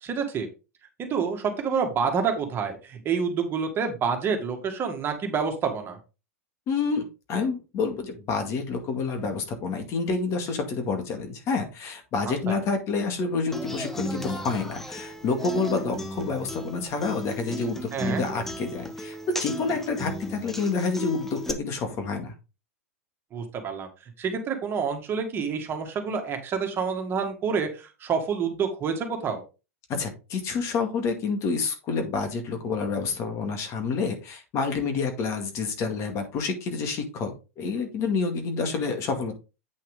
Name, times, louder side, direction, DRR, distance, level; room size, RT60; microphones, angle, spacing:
voice 1, 0.0-0.5 1.0-6.0 12.5-12.6 17.9-18.2 23.3-23.9 24.2-29.4, right 6 dB, 30° right, 4 dB, 2.0 m, -28 dB
voice 2, 6.7-22.3 29.9-39.3, left 4 dB, 40° left, 5 dB, 2.1 m, -28 dB
Human voice / Acoustic guitar, 13.5-21.5, equal, 5° left, 1.1 m, -35 dB
8.6 x 5.6 x 3.7 m, 0.30 s
hypercardioid pair, 95°, 8 cm